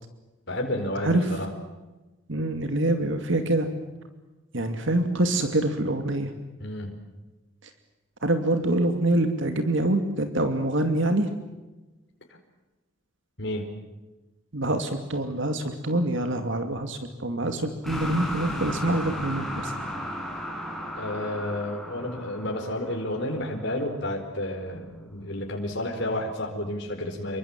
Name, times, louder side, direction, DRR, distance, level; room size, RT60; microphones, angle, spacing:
voice 1, 0.5-1.5 6.6-6.9 13.4-13.7 21.0-27.4, left 1 dB, 55° left, 1 dB, 4.7 m, -31 dB
voice 2, 2.3-3.7 4.5-6.3 8.2-11.3 14.5-19.7, right 1 dB, 60° right, 7 dB, 2.5 m, -25 dB
sound 1, 17.8-23.9, equal, ahead, 6.2 m, -35 dB
28.0 x 24.5 x 7.5 m, 1.1 s
head